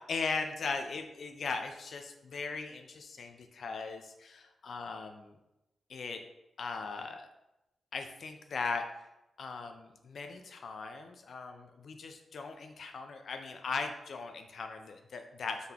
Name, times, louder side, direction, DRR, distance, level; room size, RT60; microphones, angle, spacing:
voice 1, 0.1-5.3 5.9-6.2 6.6-7.3 7.9-8.8 9.4-15.7, left 4 dB, 55° left, 6 dB, 0.3 m, -38 dB
3.8 x 3.5 x 2.8 m, 0.94 s
wide cardioid pair, 175°, 0 cm